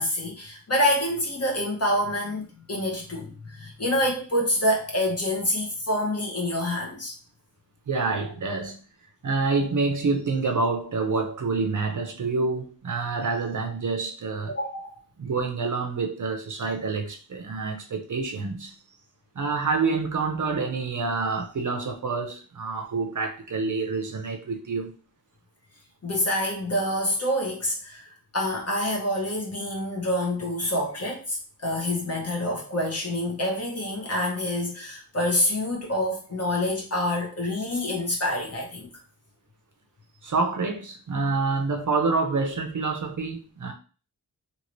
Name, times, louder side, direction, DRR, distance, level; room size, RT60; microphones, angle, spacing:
voice 1, 0.0-7.1 14.5-15.0 26.0-28.1 28.3-38.9, left 1 dB, 40° left, 1.1 m, -27 dB
voice 2, 7.9-8.8 9.2-14.5 15.2-18.7 19.4-24.9 40.2-43.7, right 4 dB, 50° right, 0.6 m, -27 dB
2.9 x 2.7 x 3.0 m
wide cardioid pair, 110°, 39 cm